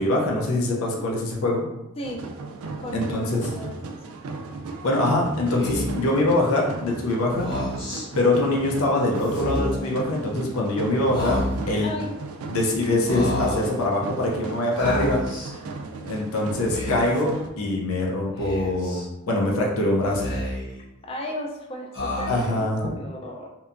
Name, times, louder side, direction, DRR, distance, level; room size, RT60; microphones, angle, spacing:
voice 1, 0.0-1.6 2.9-3.5 4.8-7.5 8.1-11.4 11.7-11.9 12.5-15.2 16.1-20.2 22.3-22.8, left 2 dB, 85° left, -1 dB, 0.5 m, -23 dB
sound 1, 2.0-17.5, right 3 dB, 85° right, 0.3 m, -36 dB
voice 2, 2.8-3.8 4.1-4.2 11.8-12.3 13.1-13.2 21.1-23.5, left 1 dB, 25° left, 1 dB, 0.4 m, -35 dB
Speech, 5.6-6.1 7.3-8.0 9.2-9.9 11.1-11.8 13.0-13.7 14.8-15.5 16.5-17.2 18.4-19.0 20.0-20.8 21.9-22.6, left 1 dB, 65° left, 0.9 m, -29 dB
2.8 x 2.2 x 2.5 m, 0.93 s
head